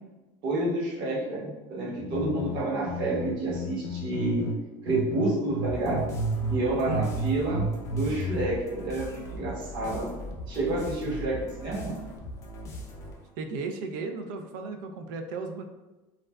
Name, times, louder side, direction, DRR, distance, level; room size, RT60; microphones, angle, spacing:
voice 1, 0.4-4.5 4.8-6.0 6.5-7.6 7.9-10.1 10.5-12.0, right 2 dB, 45° right, -5 dB, 1.0 m, -29 dB
sound 1, 2.0-4.6 4.9-6.6 6.9-8.5, right 1 dB, 90° left, 0.5 m, -31 dB
sound 2, 5.6-13.3, left 1 dB, 30° left, 0.5 m, -40 dB
voice 2, 6.7-7.1 11.0-11.3 13.4-15.6, right 4 dB, 80° right, 5 dB, 0.4 m, -35 dB
2.4 x 2.1 x 3.3 m, 1.1 s
cardioid pair, 160°, 10 cm